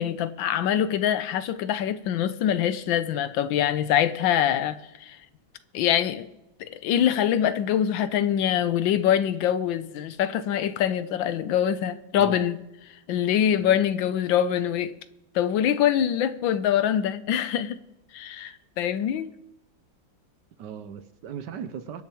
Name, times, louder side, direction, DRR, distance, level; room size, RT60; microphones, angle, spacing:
voice 1, 0.0-5.2 5.7-6.3 6.6-12.6 13.1-14.9 15.3-17.8 18.1-19.3, left 10 dB, 80° left, 1.4 m, -24 dB
voice 2, 20.6-22.0, right 8 dB, 70° right, 1.2 m, -38 dB
23.5 x 10.5 x 3.0 m
omnidirectional pair, 2.2 m